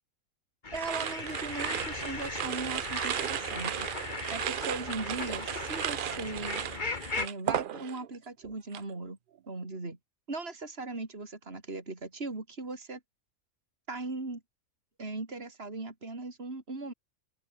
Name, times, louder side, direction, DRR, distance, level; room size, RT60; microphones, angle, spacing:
sound 1, 0.6-7.3, left 3 dB, 35° left, 2.0 m, -38 dB
voice 1, 0.7-3.9 4.3-6.6 7.1-9.2 9.5-10.0 10.3-13.0 13.9-14.4 15.0-16.9, right 3 dB, 45° right, 4.0 m, -38 dB
sound 2, 0.7-8.1 8.4-8.9, right 10 dB, 60° right, 0.5 m, -35 dB
open air
omnidirectional pair, 1.5 m